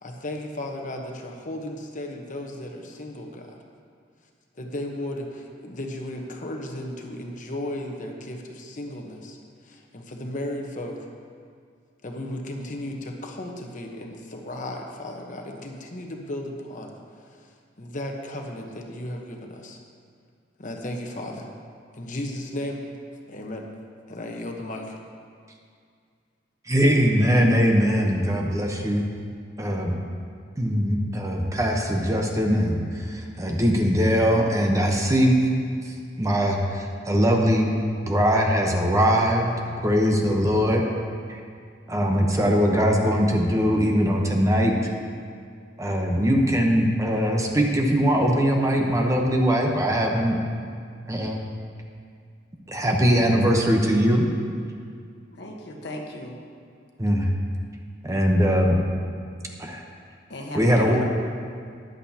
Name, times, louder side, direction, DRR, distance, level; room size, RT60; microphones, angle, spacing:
voice 1, 0.0-3.6 4.6-9.4 9.6-11.1 12.0-17.5 17.8-19.8 20.6-21.5 21.9-22.8 23.3-23.7 24.1-25.0, left 1 dB, 45° left, 2 dB, 1.1 m, -35 dB
voice 2, 26.7-29.1 29.6-30.0 30.6-35.4 35.8-37.7 38.0-39.5 39.8-40.8 41.3-41.4 41.9-44.9 45.8-50.4 51.1-51.4 52.7-54.3 57.0-57.3 58.0-58.9 59.6-59.8 60.5-61.0, equal, 15° right, 1 dB, 0.9 m, -21 dB
voice 3, 55.3-56.4 60.3-61.0, left 1 dB, 65° left, 1 dB, 1.2 m, -36 dB
14.0 x 11.0 x 2.9 m, 2.2 s
head